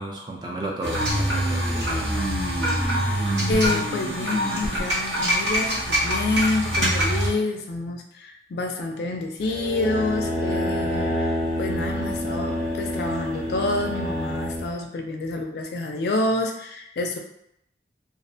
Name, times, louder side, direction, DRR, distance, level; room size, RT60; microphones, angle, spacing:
voice 1, 0.0-2.1, right 1 dB, 25° right, -1 dB, 0.3 m, -33 dB
sound 1, 0.8-7.3, equal, 85° right, 0.7 m, -24 dB
voice 2, 3.5-11.3 11.6-17.2, left 2 dB, 65° left, 3 dB, 0.3 m, -28 dB
sound 2, 9.4-14.7, equal, 65° right, 1.1 m, -27 dB
2.4 x 2.1 x 2.6 m, 0.77 s
head